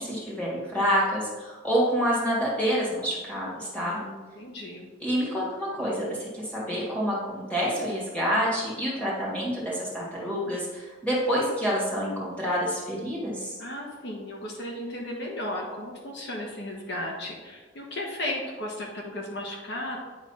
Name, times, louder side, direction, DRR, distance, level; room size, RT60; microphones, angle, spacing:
voice 1, 0.0-4.0 5.0-13.5, equal, 5° left, -5 dB, 2.4 m, -27 dB
voice 2, 3.8-4.9 13.6-20.0, left 1 dB, 60° left, -1 dB, 1.3 m, -35 dB
9.5 x 4.0 x 5.7 m, 1.4 s
head